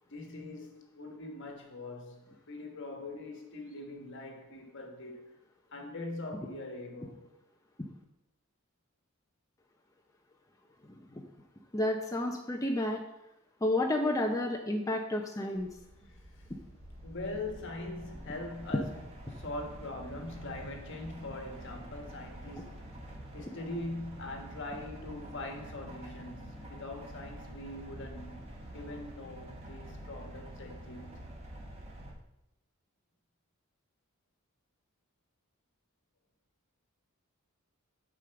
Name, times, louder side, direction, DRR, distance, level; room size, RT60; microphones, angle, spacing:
voice 1, 0.1-5.4 5.7-7.3 16.0-16.5 17.0-19.0 19.3-22.7 23.3-28.5 28.7-31.2, left 2 dB, 55° left, 1.5 m, -42 dB
voice 2, 11.7-13.0 13.6-15.7, left 1 dB, 15° left, 0.6 m, -30 dB
sound 1, 15.6-32.1, right 1 dB, 30° right, 1.6 m, -47 dB
7.0 x 5.0 x 6.9 m
head